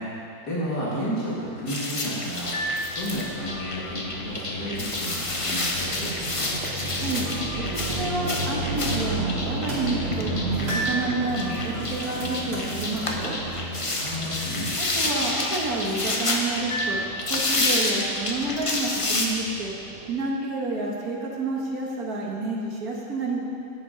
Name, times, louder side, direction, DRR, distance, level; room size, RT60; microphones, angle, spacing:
voice 1, 0.4-2.6 3.0-6.5 13.9-14.7, equal, 80° left, -7 dB, 2.6 m, -32 dB
sound 1, 1.7-19.3, left 2 dB, 30° left, 0.6 m, -29 dB
sound 2, 2.4-20.1, right 2 dB, 45° right, 1.0 m, -34 dB
voice 2, 6.9-7.3 7.6-13.3 14.8-17.0 17.3-19.7 20.1-23.4, right 2 dB, 65° right, -2 dB, 2.0 m, -29 dB
sound 3, 8.6-9.1 9.5-10.0 10.3-11.0 11.5-14.5 14.7-15.9, right 1 dB, 90° right, 3.4 m, -40 dB
11.0 x 8.8 x 5.2 m, 2.6 s
omnidirectional pair, 1.7 m